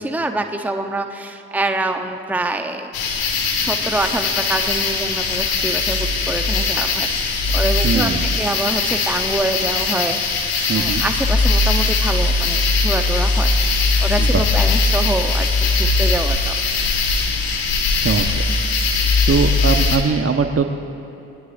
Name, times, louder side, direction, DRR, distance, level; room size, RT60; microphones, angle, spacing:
voice 1, 0.0-3.2 3.6-10.2 10.7-16.6 17.2-17.3, right 2 dB, 5° right, 6 dB, 1.0 m, -25 dB
sound 1, 2.9-20.0, left 3 dB, 70° left, 1.9 m, -20 dB
voice 2, 7.8-8.2 10.7-11.0 14.2-14.5 18.0-18.2 19.3-20.6, right 5 dB, 35° right, 6 dB, 1.2 m, -20 dB
22.5 x 19.0 x 2.7 m, 2.8 s
hypercardioid pair, 45°, 38 cm